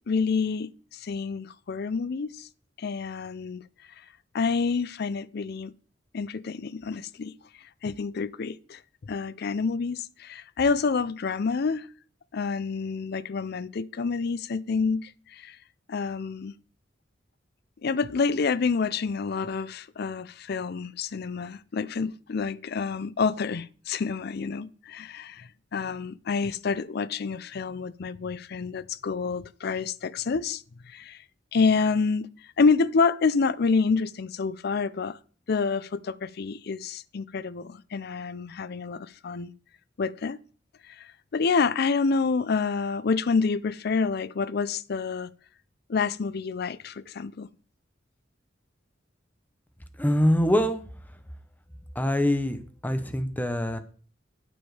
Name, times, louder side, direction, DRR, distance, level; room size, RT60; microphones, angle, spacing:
voice 1, 0.1-2.5 2.8-3.6 4.3-5.7 6.1-7.3 7.8-11.9 12.3-15.6 15.9-16.5 17.8-31.2 31.5-32.3 32.6-35.2 35.5-39.5 40.0-40.4 40.9-45.3 45.9-47.5, left 4 dB, 60° left, 0.5 m, -28 dB
voice 2, 50.0-50.8 52.0-52.6 52.8-53.8, equal, 10° left, 1.0 m, -24 dB
9.3 x 7.2 x 4.9 m
head